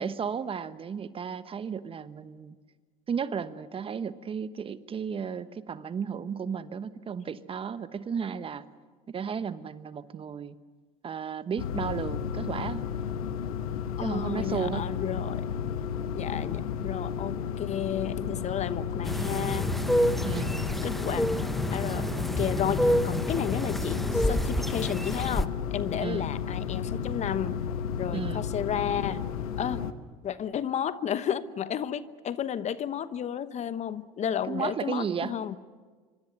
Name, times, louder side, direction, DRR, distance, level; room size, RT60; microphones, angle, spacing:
voice 1, 0.0-2.5 3.1-8.6 9.1-10.5 11.0-12.9 14.0-14.9 20.2-20.6 26.0-26.3 28.1-28.4 34.5-35.4, right 6 dB, 30° right, 13 dB, 1.1 m, -34 dB
sound 1, 11.6-29.9, left 7 dB, 80° left, 1.3 m, -33 dB
voice 2, 14.0-15.5 16.1-19.7 20.8-21.2 21.7-27.6 28.0-29.2 29.6-29.8 30.2-35.6, left 9 dB, 40° left, 14 dB, 1.0 m, -32 dB
sound 2, 19.0-25.4, equal, ahead, 0.8 m, -28 dB
26.0 x 25.0 x 6.7 m, 1.5 s
hypercardioid pair, 80°, 18 cm